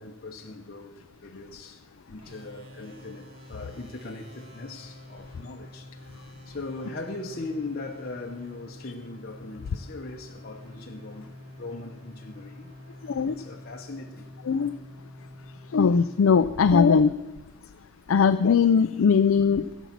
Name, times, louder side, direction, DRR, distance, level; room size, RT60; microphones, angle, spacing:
voice 1, 0.0-12.9 13.2-14.3, left 2 dB, 45° left, 0.9 m, -40 dB
sound 1, 2.2-16.8, left 1 dB, 30° right, 2.3 m, -47 dB
voice 2, 15.7-17.2 18.1-19.7, left 6 dB, 70° left, 0.4 m, -20 dB
15.0 x 7.2 x 7.3 m
head